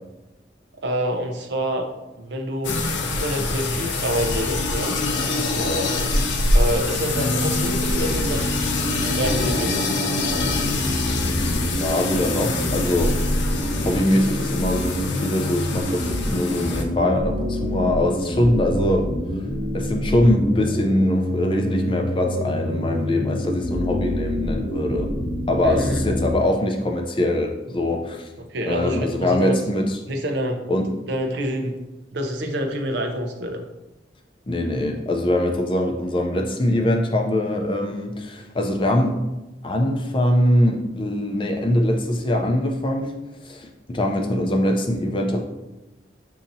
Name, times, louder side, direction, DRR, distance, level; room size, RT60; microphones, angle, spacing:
voice 1, 0.8-1.9 2.2-2.8 3.1-5.0 6.5-8.5 8.8-10.0 25.6-26.0 28.4-29.6 30.1-31.8 32.1-33.6, equal, 70° right, 3 dB, 0.6 m, -27 dB
sound 1, 2.6-16.8, left 2 dB, 80° left, 0.6 m, -25 dB
voice 2, 5.6-5.9 11.2-13.1 13.8-19.1 19.7-25.2 25.5-28.3 28.7-30.0 30.7-30.9 34.5-39.2 39.6-43.1 43.4-45.4, left 1 dB, 25° left, 3 dB, 0.4 m, -22 dB
sound 2, 7.1-26.3, equal, ahead, 1.1 m, -27 dB
7.1 x 2.8 x 2.6 m, 1.0 s
head